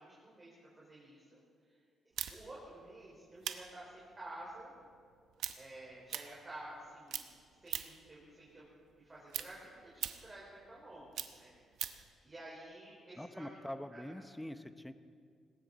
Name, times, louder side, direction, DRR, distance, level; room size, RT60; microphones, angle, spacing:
voice 1, 0.0-1.4 1.7-1.8 2.3-4.7 5.6-7.2 7.6-8.7 9.0-11.5 12.2-13.6 13.9-14.1, right 1 dB, 20° right, -6 dB, 4.4 m, -51 dB
sound 1, 2.2-6.8 7.1-8.1 8.5-12.1, right 10 dB, 75° right, 0.9 m, -43 dB
voice 2, 13.2-14.9, left 1 dB, 5° left, 10 dB, 0.8 m, -44 dB
19.5 x 18.0 x 4.1 m, 2.2 s
cardioid pair, 90°, 0 cm